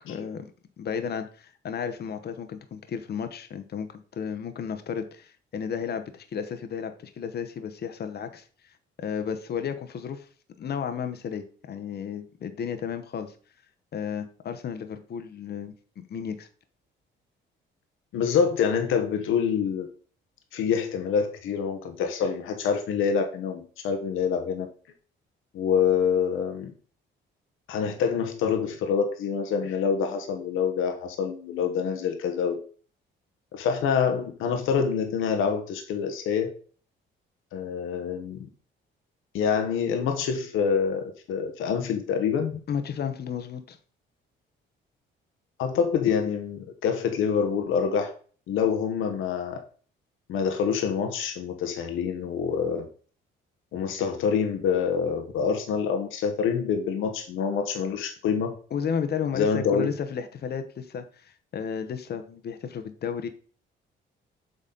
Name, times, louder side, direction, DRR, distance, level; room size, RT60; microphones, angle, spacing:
voice 1, 0.1-0.4 0.8-8.5 9.0-10.3 10.6-13.3 13.9-15.7 16.1-16.5 42.7-43.8 58.7-63.3, left 7 dB, 55° left, 8 dB, 0.9 m, -33 dB
voice 2, 18.1-19.9 20.5-24.7 25.5-26.7 27.7-32.6 33.5-36.5 37.5-38.5 39.3-42.6 45.6-48.1 48.5-49.6 50.3-52.9 53.7-58.5 59.3-59.9, left 6 dB, 85° left, 5 dB, 1.1 m, -26 dB
7.5 x 4.1 x 3.9 m, 0.41 s
cardioid pair, 90°, 20 cm